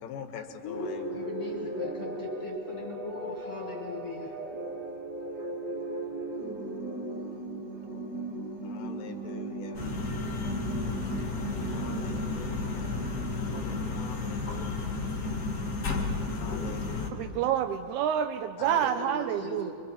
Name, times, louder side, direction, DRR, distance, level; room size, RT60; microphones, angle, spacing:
voice 1, 0.0-1.1 8.6-9.8 11.7-13.0 13.9-15.0 16.3-17.3, left 7 dB, 85° left, 5 dB, 2.7 m, -44 dB
voice 2, 0.6-4.4 18.6-19.7, left 3 dB, 10° left, -4 dB, 5.7 m, -38 dB
Alien Call, 0.7-14.5, right 2 dB, 35° right, 2.0 m, -38 dB
sound 1, 9.7-17.1, left 3 dB, 35° left, 2.0 m, -32 dB
voice 3, 17.1-19.7, right 9 dB, 80° right, 9 dB, 1.7 m, -28 dB
26.0 x 23.5 x 4.3 m, 2.5 s
omnidirectional pair, 4.0 m